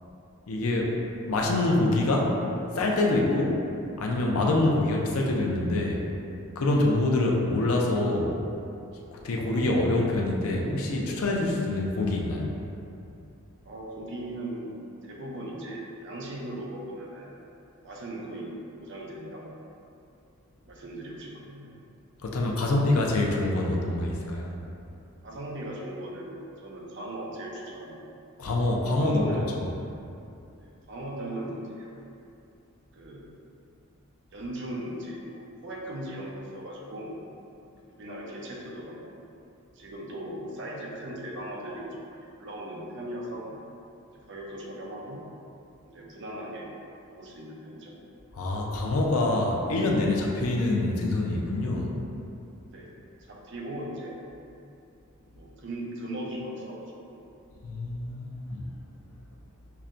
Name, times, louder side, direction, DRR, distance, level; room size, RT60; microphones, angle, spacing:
voice 1, 0.5-1.0 1.3-2.3 2.7-3.6 4.0-6.0 6.6-8.3 9.1-12.5 22.2-24.5 28.4-29.7 48.3-51.9 57.6-58.6, left 2 dB, 75° left, -1 dB, 0.5 m, -25 dB
voice 2, 13.6-17.4 17.8-19.6 20.6-21.7 22.6-22.8 25.2-28.0 29.0-29.6 30.6-32.1 32.9-33.2 34.3-37.2 37.9-39.3 39.7-43.6 44.1-45.2 45.8-46.7 47.1-47.9 52.7-52.9 53.2-54.2 55.3-57.2, right 1 dB, 55° right, -2 dB, 0.5 m, -38 dB
5.5 x 2.1 x 2.5 m, 2.7 s
head